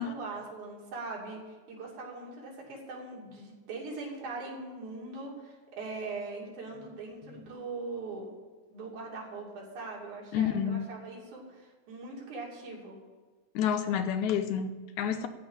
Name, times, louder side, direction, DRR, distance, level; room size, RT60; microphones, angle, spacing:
voice 1, 0.0-8.3 8.7-13.0, right 3 dB, 80° right, -3 dB, 4.3 m, -41 dB
voice 2, 10.3-10.9 13.6-15.3, left 8 dB, 80° left, 9 dB, 2.2 m, -29 dB
15.0 x 5.4 x 8.8 m, 1.4 s
omnidirectional pair, 3.4 m